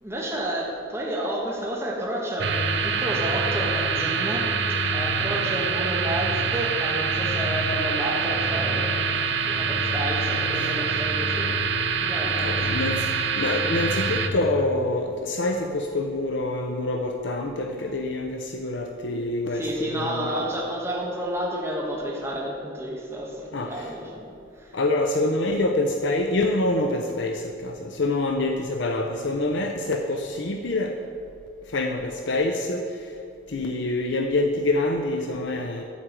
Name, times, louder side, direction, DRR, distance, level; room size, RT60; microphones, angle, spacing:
voice 1, 0.0-11.5 12.0-12.6 19.5-24.8, right 1 dB, 15° right, -3 dB, 1.3 m, -31 dB
sound 1, 2.4-14.3, right 4 dB, 60° right, 0.8 m, -25 dB
voice 2, 12.4-20.5 23.5-23.9 24.7-31.0 31.7-33.1 33.5-35.8, left 2 dB, 65° left, 3 dB, 0.6 m, -26 dB
11.0 x 4.6 x 8.2 m, 2.5 s
head